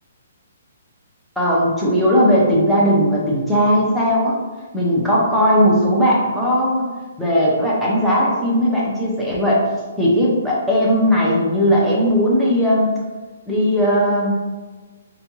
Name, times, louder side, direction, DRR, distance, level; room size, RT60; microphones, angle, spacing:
voice 1, 1.4-4.3 4.7-6.9 7.2-9.6 10.0-12.9 13.5-14.3, equal, ahead, -7 dB, 0.5 m, -17 dB
4.8 x 2.2 x 2.9 m, 1.3 s
hypercardioid pair, 180°, 0 cm